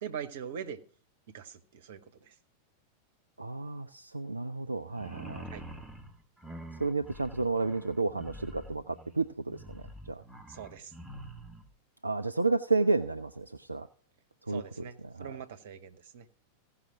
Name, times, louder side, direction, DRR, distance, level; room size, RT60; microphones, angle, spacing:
voice 1, 0.0-0.8 1.3-2.3 5.5-5.6 10.5-10.9 14.5-16.3, right 8 dB, 55° right, 10 dB, 1.1 m, -42 dB
voice 2, 3.4-5.4 6.8-10.2 12.0-13.9 14.5-15.3, right 3 dB, 80° right, 10 dB, 0.4 m, -31 dB
sound 1, 4.9-11.7, right 1 dB, 10° right, 1.5 m, -46 dB
16.0 x 5.7 x 5.9 m, 0.43 s
figure-of-eight pair, 90°, 0 cm